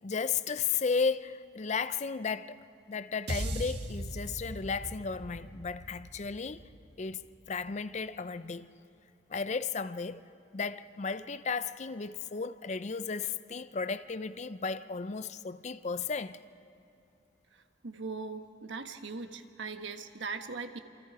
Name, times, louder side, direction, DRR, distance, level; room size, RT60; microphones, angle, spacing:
voice 1, 0.0-6.6 7.0-8.8 9.3-10.3 10.5-16.4, left 5 dB, 35° left, 0.5 m, -34 dB
sound 1, 3.3-7.6, right 1 dB, 60° right, 1.6 m, -39 dB
voice 2, 17.5-20.8, right 4 dB, 75° right, 1.3 m, -40 dB
28.0 x 27.0 x 4.9 m
head